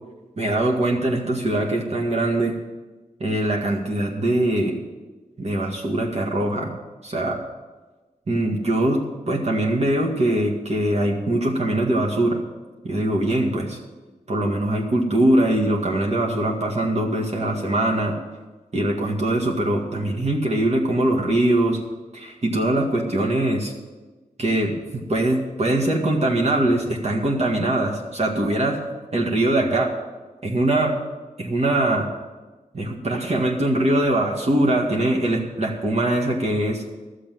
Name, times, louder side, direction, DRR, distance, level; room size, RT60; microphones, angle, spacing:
voice 1, 0.4-2.6 3.2-4.7 5.4-6.8 7.0-7.4 8.3-12.4 12.8-13.8 14.3-18.2 18.7-21.8 22.1-23.7 24.4-24.8 25.1-28.9 29.1-29.9 30.4-31.0 31.4-32.1 32.7-36.8, right 1 dB, 50° right, -1 dB, 2.0 m, -22 dB
13.0 x 7.6 x 7.6 m, 1.2 s
wide cardioid pair, 100°, 14 cm